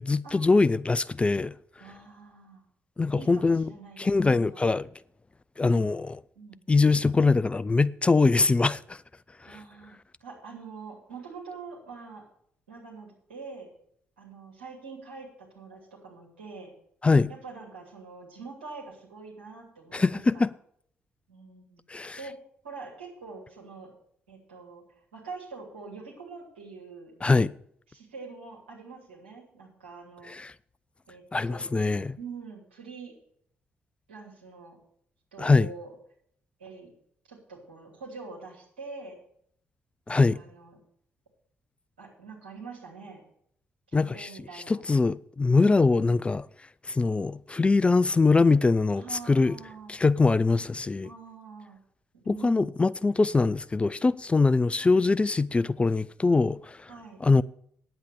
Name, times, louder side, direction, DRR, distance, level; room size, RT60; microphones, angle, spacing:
voice 1, 0.0-1.5 3.0-3.7 4.0-4.9 5.6-6.2 6.7-9.0 9.4-9.6 17.0-17.3 19.9-20.5 21.9-22.2 27.2-27.5 30.3-30.5 31.3-32.2 35.4-35.7 40.1-40.4 43.9-44.3 44.7-46.5 46.8-49.5 49.9-51.1 52.3-56.9 57.2-57.4, left 3 dB, 20° left, 0.3 m, -23 dB
voice 2, 1.8-2.6 3.1-4.6 5.7-5.9 6.3-6.6 9.4-9.9 10.2-12.2 12.7-13.7 14.2-16.7 17.3-20.5 21.3-21.8 22.2-22.4 22.6-23.9 24.3-27.1 27.9-30.4 31.1-33.1 34.1-34.8 35.3-36.0 36.6-36.9 37.3-39.2 40.1-40.8 42.0-43.2 43.9-44.8 48.9-50.0 51.0-51.8 52.1-52.8 54.4-55.1 56.9-57.2, right 4 dB, 80° right, 2.7 m, -45 dB
9.8 x 8.1 x 6.7 m
figure-of-eight pair, 40°, 6 cm